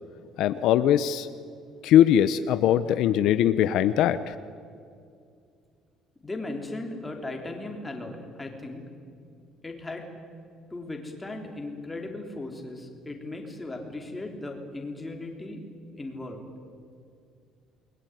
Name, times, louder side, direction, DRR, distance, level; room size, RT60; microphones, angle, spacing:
voice 1, 0.4-1.3 1.8-4.3, left 11 dB, 65° left, 12 dB, 0.9 m, -21 dB
voice 2, 6.2-8.8 9.6-10.0 10.7-15.6 16.0-16.4, left 2 dB, 10° left, 2 dB, 3.6 m, -37 dB
29.0 x 22.0 x 9.3 m, 2.4 s
cardioid pair, 160°, 0 cm